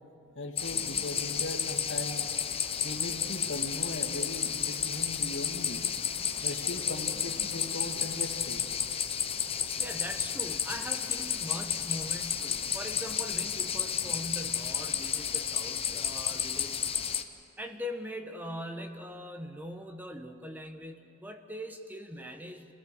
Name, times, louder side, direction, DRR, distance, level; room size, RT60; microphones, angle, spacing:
voice 1, 0.3-2.3 2.8-5.9 6.2-8.7, left 1 dB, 60° left, 0 dB, 2.6 m, -39 dB
sound 1, 0.6-17.2, left 8 dB, 25° left, 0.8 m, -32 dB
voice 2, 6.3-6.7 9.8-16.8 17.6-22.7, equal, 10° right, 6 dB, 1.1 m, -41 dB
27.5 x 17.0 x 7.0 m, 2.8 s
head